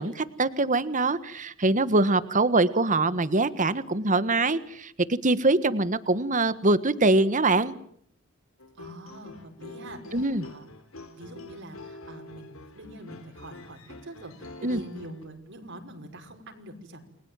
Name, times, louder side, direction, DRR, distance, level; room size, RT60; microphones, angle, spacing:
voice 1, 0.0-7.7 10.1-10.4 14.6-14.8, right 2 dB, 40° right, 14 dB, 1.5 m, -23 dB
sound 1, 8.6-15.2, left 2 dB, 90° left, 4.2 m, -46 dB
voice 2, 8.8-10.7 11.1-17.0, right 1 dB, 60° right, 4 dB, 5.9 m, -44 dB
29.5 x 22.0 x 9.1 m, 0.66 s
head